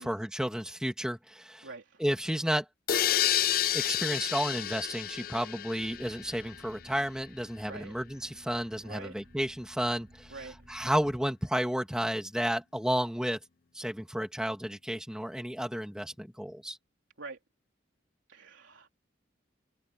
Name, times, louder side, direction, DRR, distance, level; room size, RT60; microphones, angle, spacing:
voice 1, 0.0-1.7 2.0-2.7 3.7-10.3 10.7-13.4 13.7-16.8, equal, 5° right, 2.3 m, -32 dB
voice 2, 1.6-2.0 7.7-7.9 8.8-9.2 10.3-10.5 17.2-17.4 18.3-18.9, right 3 dB, 85° right, 3.4 m, -45 dB
sound 1, 2.9-6.6, left 11 dB, 45° left, 0.4 m, -30 dB
sound 2, 5.8-11.2, equal, 35° right, 5.3 m, -56 dB
open air
head